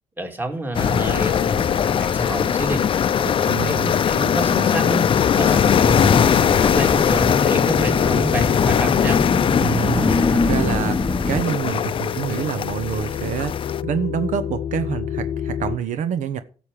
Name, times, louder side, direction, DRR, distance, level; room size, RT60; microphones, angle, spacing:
voice 1, 0.2-2.8 3.2-9.2, right 1 dB, 15° right, 5 dB, 2.4 m, -29 dB
sound 1, 0.7-13.8, left 8 dB, 45° left, 0.5 m, -20 dB
sound 2, 0.9-15.8, left 10 dB, 70° left, 0.8 m, -30 dB
voice 2, 3.5-3.9 9.6-11.0 11.3-16.4, right 8 dB, 70° right, 12 dB, 0.9 m, -26 dB
sound 3, 5.7-11.4, left 3 dB, 20° left, 0.8 m, -24 dB
12.5 x 7.3 x 4.9 m, 0.38 s
cardioid pair, 95°, 13 cm